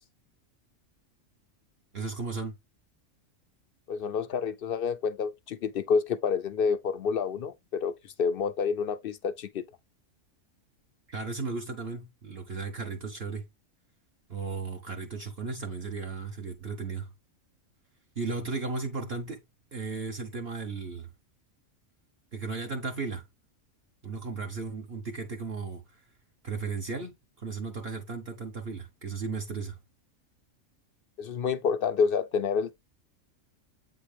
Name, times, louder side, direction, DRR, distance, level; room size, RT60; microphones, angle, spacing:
voice 1, 1.9-2.5 11.1-13.4 14.3-17.1 18.2-19.4 19.7-21.1 22.3-23.3 24.0-26.0 26.4-29.8, right 4 dB, 50° right, 1.3 m, -35 dB
voice 2, 3.9-9.6 31.2-32.7, left 6 dB, 60° left, 0.6 m, -28 dB
8.3 x 3.8 x 3.3 m
omnidirectional pair, 1.4 m